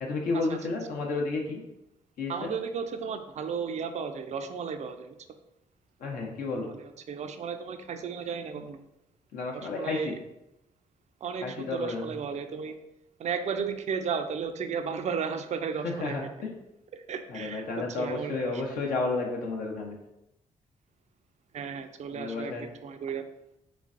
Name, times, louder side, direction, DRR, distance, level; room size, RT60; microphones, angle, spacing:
voice 1, 0.0-1.6 2.2-2.5 6.0-6.7 9.3-10.2 11.4-12.2 15.8-16.5 17.3-19.9 22.1-22.7, left 3 dB, 75° left, 0 dB, 0.7 m, -32 dB
voice 2, 2.3-5.1 6.6-8.8 9.5-10.1 11.2-12.8 13.2-16.2 16.9-18.8 21.5-23.2, right 6 dB, 50° right, 8 dB, 0.4 m, -34 dB
3.2 x 3.2 x 2.5 m, 0.86 s
supercardioid pair, 50°, 15 cm